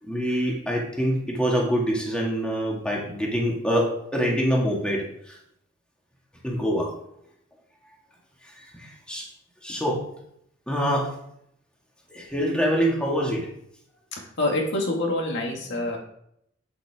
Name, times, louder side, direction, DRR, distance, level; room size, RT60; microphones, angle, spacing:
voice 1, 0.0-5.4 6.4-6.9 8.4-9.3 9.6-10.0 10.7-11.2 12.1-13.5, equal, 5° left, -2 dB, 2.0 m, -25 dB
voice 2, 14.2-16.0, left 2 dB, 65° left, 1 dB, 2.1 m, -26 dB
8.6 x 7.7 x 3.6 m, 0.74 s
head